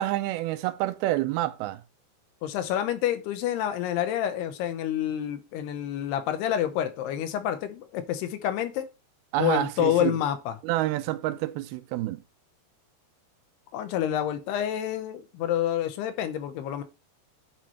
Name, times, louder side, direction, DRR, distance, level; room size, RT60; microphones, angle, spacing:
voice 1, 0.0-1.8 9.3-10.1 10.6-12.2, right 15 dB, 85° right, 2.4 m, -28 dB
voice 2, 2.4-8.9 9.4-10.6 13.7-16.8, left 11 dB, 90° left, 2.9 m, -28 dB
8.7 x 3.0 x 5.6 m
omnidirectional pair, 4.5 m